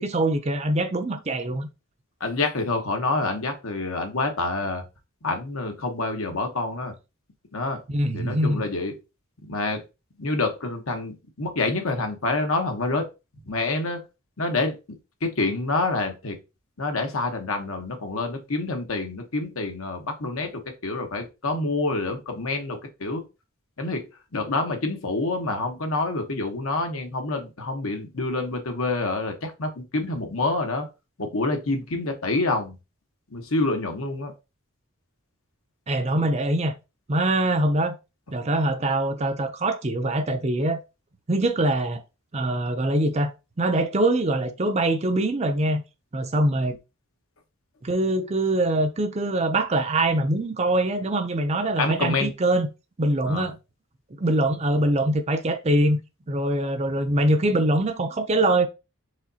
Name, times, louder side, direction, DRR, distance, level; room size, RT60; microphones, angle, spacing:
voice 1, 0.0-1.7 7.9-8.6 35.9-36.8 37.1-38.0 38.3-40.8 41.3-42.0 42.3-43.3 43.6-45.8 46.1-46.8 47.8-52.7 53.0-53.6 54.2-56.0 56.3-58.7, right 1 dB, 30° right, 0.5 m, -23 dB
voice 2, 2.2-4.8 5.2-6.9 7.5-7.8 8.1-8.9 9.4-9.8 10.2-13.0 13.4-14.0 14.4-14.8 15.2-16.4 16.8-23.2 23.8-30.9 31.2-32.8 33.3-34.3 51.8-52.3 53.3-53.5, left 2 dB, 75° left, 1.1 m, -27 dB
4.9 x 3.9 x 2.8 m
head